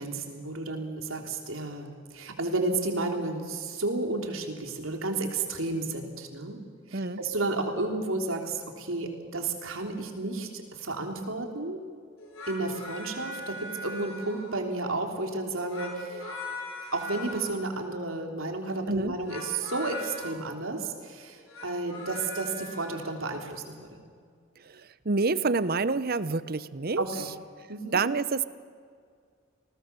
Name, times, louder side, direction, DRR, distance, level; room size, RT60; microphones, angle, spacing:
voice 1, 0.0-6.6 6.9-11.8 12.5-16.3 16.9-24.0 27.0-27.3 27.7-28.0, right 2 dB, 85° right, 3 dB, 3.4 m, -32 dB
sound 1, 12.2-14.7 15.5-17.6 19.1-20.3 21.3-23.0, left 1 dB, 90° left, 7.7 m, -40 dB
voice 2, 24.6-27.3 27.9-28.4, right 3 dB, 50° right, 15 dB, 0.8 m, -28 dB
28.5 x 20.0 x 6.9 m, 2.1 s
head